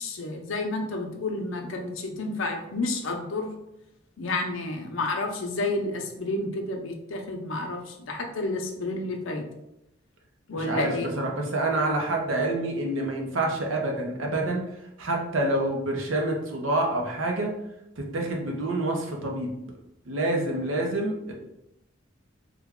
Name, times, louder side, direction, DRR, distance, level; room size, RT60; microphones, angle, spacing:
voice 1, 0.0-3.5 4.2-9.5 10.5-11.1, left 2 dB, 75° left, 3 dB, 0.6 m, -30 dB
voice 2, 10.5-14.6 15.0-17.5 18.0-19.5 20.1-21.3, right 2 dB, 75° right, 1 dB, 0.7 m, -27 dB
3.3 x 2.2 x 3.5 m, 0.85 s
head